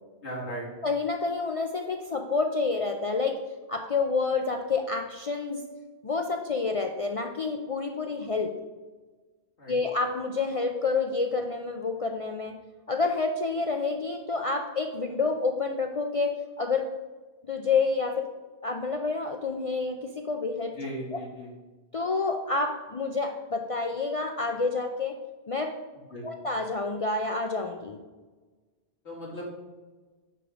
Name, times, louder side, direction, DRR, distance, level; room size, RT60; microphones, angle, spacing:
voice 1, 0.2-0.7 9.6-9.8 20.7-21.5 26.1-26.3 29.0-29.4, equal, 75° left, -4 dB, 2.5 m, -37 dB
voice 2, 0.8-3.4 3.7-5.6 6.0-8.5 9.7-12.5 12.9-16.9 17.5-18.3 18.6-20.7 21.1-21.2 21.9-25.2 25.5-25.7 26.2-28.0, left 4 dB, 50° left, 4 dB, 0.4 m, -28 dB
9.2 x 3.5 x 5.0 m, 1.3 s
omnidirectional pair, 1.1 m